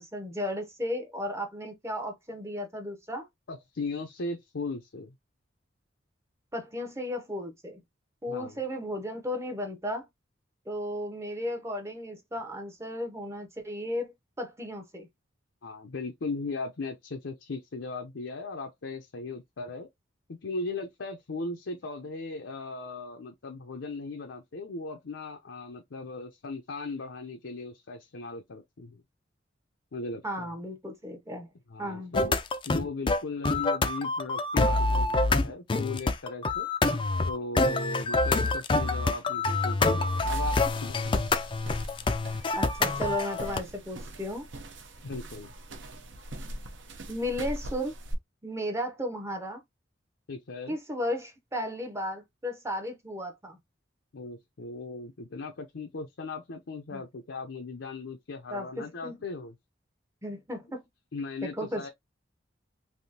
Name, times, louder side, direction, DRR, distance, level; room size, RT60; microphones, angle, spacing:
voice 1, 0.0-3.3 6.5-7.8 8.2-10.1 10.7-15.1 30.2-31.5 31.8-32.1 42.6-44.5 47.1-47.9 48.4-49.6 50.7-53.6 56.9-57.0 58.5-59.2 60.2-60.8 61.4-61.9, left 1 dB, 15° right, 0.7 m, -34 dB
voice 2, 3.5-5.1 8.3-8.6 15.6-19.9 20.3-29.0 29.9-30.5 31.7-32.4 32.6-36.7 37.3-41.3 45.0-45.5 50.3-50.8 54.1-59.5 61.1-61.9, left 3 dB, 75° left, 0.6 m, -38 dB
sound 1, 32.1-43.6, left 3 dB, 25° left, 0.4 m, -26 dB
sound 2, 40.1-48.1, right 1 dB, 75° right, 0.8 m, -41 dB
3.5 x 2.7 x 2.7 m
head